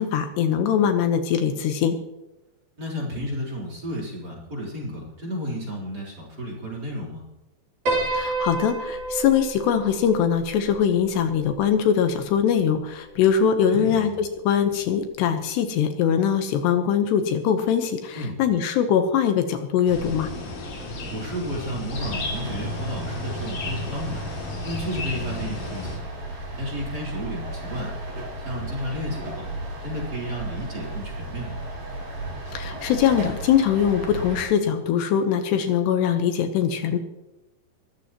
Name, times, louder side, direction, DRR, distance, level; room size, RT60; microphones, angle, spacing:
voice 1, 0.0-2.0 8.1-20.3 32.5-37.0, left 8 dB, 80° left, 6 dB, 3.1 m, -22 dB
voice 2, 2.8-7.2 13.7-14.1 18.1-18.4 21.1-24.2 24.6-26.1 26.6-27.9 28.4-29.5 29.8-31.6, equal, 25° right, -2 dB, 4.1 m, -32 dB
Piano, 7.9-12.3, right 3 dB, 45° right, 4.9 m, -30 dB
sound 1, 19.9-26.0, left 2 dB, 50° left, 3.9 m, -33 dB
sound 2, 21.9-34.4, right 1 dB, 75° right, 9.2 m, -35 dB
22.5 x 14.0 x 3.1 m, 0.97 s
omnidirectional pair, 5.1 m